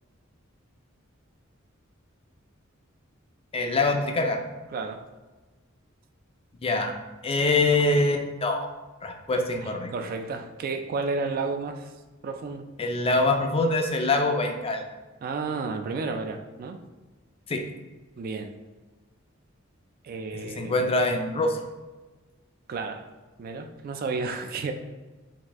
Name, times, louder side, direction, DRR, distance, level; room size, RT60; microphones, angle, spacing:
voice 1, 3.5-4.4 6.6-6.9 7.2-8.7 9.0-9.9 12.8-14.8 17.5-17.6 20.6-21.6, left 2 dB, 30° left, 4 dB, 0.4 m, -24 dB
voice 2, 4.7-5.0 9.6-11.9 12.2-12.7 15.2-16.8 18.2-18.5 20.0-20.8 22.7-23.1 23.4-24.7, right 4 dB, 45° right, 6 dB, 0.3 m, -32 dB
4.0 x 2.6 x 3.4 m, 1.2 s
head